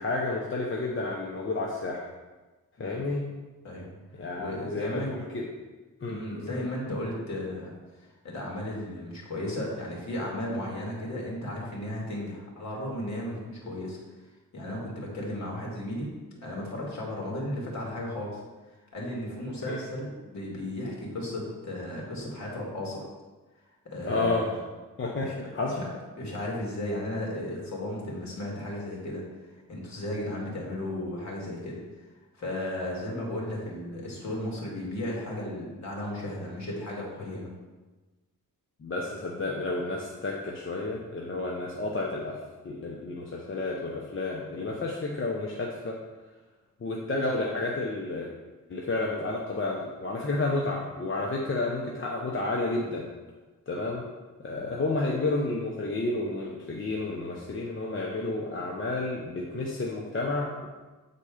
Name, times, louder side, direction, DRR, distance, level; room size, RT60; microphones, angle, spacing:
voice 1, 0.0-2.1 2.8-3.2 4.2-5.5 6.0-6.6 19.7-19.8 24.0-24.5 25.0-25.8 38.8-46.0 46.8-48.3 48.7-53.1 53.7-54.0 54.4-60.7, left 2 dB, 40° left, -2 dB, 0.9 m, -31 dB
voice 2, 3.6-4.1 4.4-5.1 6.1-7.7 8.0-14.0 14.5-16.1 16.4-18.4 18.9-23.0 23.9-24.5 25.2-25.4 25.7-25.9 26.2-29.2 29.7-31.8 32.4-37.5, left 1 dB, 55° left, -3 dB, 2.4 m, -35 dB
8.7 x 4.2 x 5.0 m, 1.2 s
wide cardioid pair, 125°, 33 cm